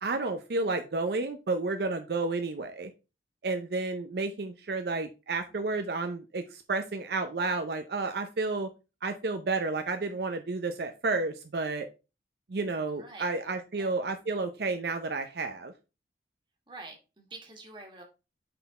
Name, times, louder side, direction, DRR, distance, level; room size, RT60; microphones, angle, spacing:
voice 1, 0.0-2.9 3.4-8.7 9.0-11.9 12.5-15.7, right 3 dB, 65° right, 7 dB, 0.5 m, -31 dB
voice 2, 12.9-13.3 13.8-13.9 16.7-18.0, right 2 dB, 25° right, 1 dB, 1.6 m, -47 dB
5.7 x 4.0 x 4.1 m, 0.30 s
head